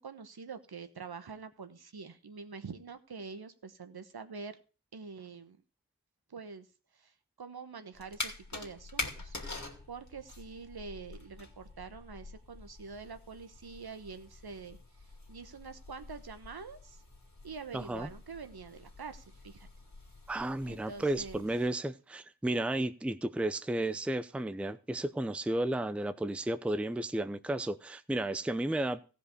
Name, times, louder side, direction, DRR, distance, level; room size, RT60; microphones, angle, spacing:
voice 1, 0.0-4.6 4.9-5.6 6.3-6.7 6.9-9.6 9.9-17.0 17.4-19.7 20.6-21.5, right 5 dB, 65° right, 1.2 m, -46 dB
sound 1, 7.9-21.7, left 2 dB, 45° left, 2.5 m, -46 dB
voice 2, 17.7-18.1 20.3-29.0, right 1 dB, 5° right, 0.6 m, -33 dB
15.0 x 5.2 x 6.5 m
cardioid pair, 40°, 40 cm